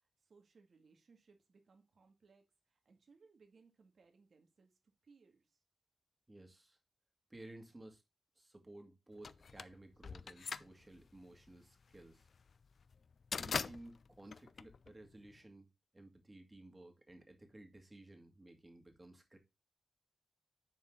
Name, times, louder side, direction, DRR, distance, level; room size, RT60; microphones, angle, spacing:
voice 1, 0.0-4.7 5.0-5.6, right 4 dB, 65° right, 2.0 m, -67 dB
voice 2, 6.3-6.8 7.3-8.0 8.4-12.3 13.4-15.7 15.9-19.4, right 1 dB, 25° right, 2.2 m, -56 dB
sound 1, 9.2-15.4, left 5 dB, 65° left, 0.4 m, -43 dB
10.5 x 4.4 x 3.8 m
wide cardioid pair, 90°, 0 cm